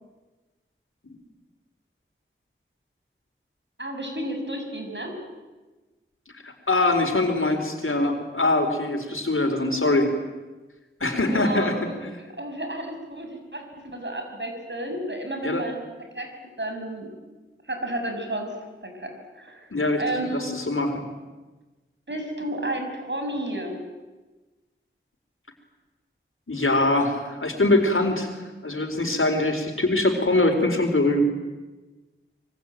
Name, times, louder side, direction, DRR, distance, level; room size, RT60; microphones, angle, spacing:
voice 1, 3.8-5.1 11.3-13.6 13.9-15.8 16.1-16.3 16.6-17.1 17.7-18.6 18.8-19.7 20.0-20.6 22.1-23.8, right 1 dB, 60° right, 4 dB, 6.6 m, -32 dB
voice 2, 6.4-10.1 11.0-11.7 15.4-15.6 19.7-20.0 20.3-21.0 26.5-28.4 28.6-31.2, left 2 dB, 75° left, 5 dB, 4.3 m, -23 dB
25.0 x 23.5 x 9.2 m, 1.2 s
wide cardioid pair, 45°, 21 cm